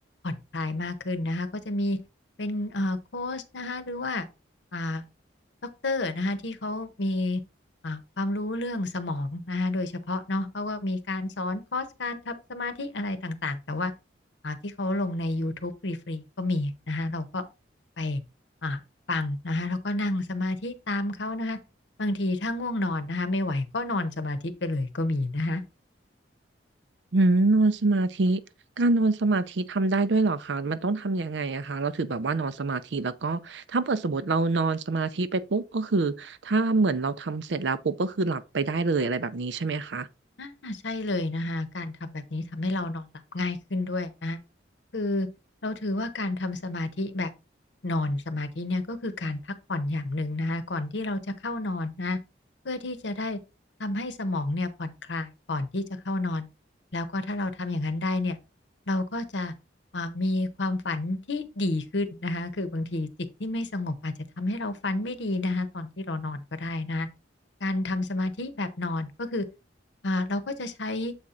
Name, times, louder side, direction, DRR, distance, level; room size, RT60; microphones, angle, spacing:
voice 1, 0.2-2.0 2.4-4.3 4.7-5.0 5.6-7.4 7.8-13.9 14.4-17.5 18.0-18.2 18.6-18.8 19.1-21.6 22.0-25.6 40.4-43.1 43.3-44.4 44.9-45.3 45.6-47.3 47.8-49.4 49.7-52.2 52.6-53.4 53.8-56.5 56.9-58.4 58.9-59.5 59.9-63.1 63.4-67.1 67.6-69.5 70.0-71.1, left 2 dB, 70° left, 0.9 m, -30 dB
voice 2, 27.1-28.4 28.8-40.1, right 3 dB, 70° right, 0.6 m, -25 dB
7.3 x 4.3 x 3.7 m
head